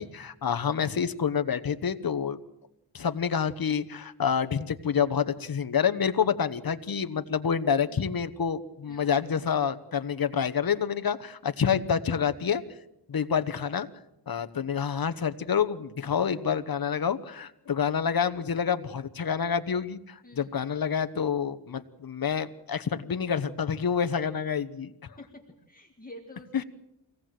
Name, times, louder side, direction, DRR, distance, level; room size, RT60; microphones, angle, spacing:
voice 1, 0.0-2.4 2.9-12.6 13.1-13.9 14.3-24.9 26.5-26.6, left 7 dB, 50° left, 10 dB, 1.1 m, -28 dB
voice 2, 25.2-26.6, left 1 dB, 20° left, 0 dB, 1.8 m, -48 dB
24.5 x 18.0 x 7.7 m, 0.86 s
wide cardioid pair, 180°, 44 cm